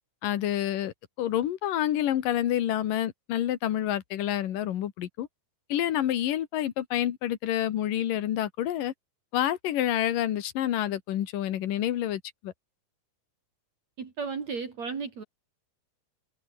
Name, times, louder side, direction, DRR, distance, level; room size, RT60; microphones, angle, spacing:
voice 1, 0.2-5.3 5.7-8.9 9.3-12.5, left 12 dB, 75° left, 3.2 m, -28 dB
voice 2, 14.0-15.2, right 5 dB, 50° right, 4.3 m, -34 dB
omnidirectional pair, 4.0 m